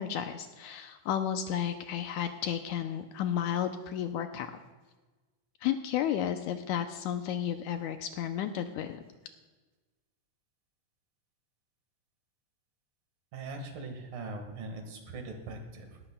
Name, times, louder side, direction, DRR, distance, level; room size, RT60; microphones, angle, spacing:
voice 1, 0.0-4.6 5.6-9.0, left 9 dB, 80° left, 7 dB, 1.8 m, -32 dB
voice 2, 13.3-16.0, right 2 dB, 85° right, 4 dB, 3.4 m, -41 dB
18.5 x 13.0 x 2.2 m, 1.2 s
omnidirectional pair, 3.8 m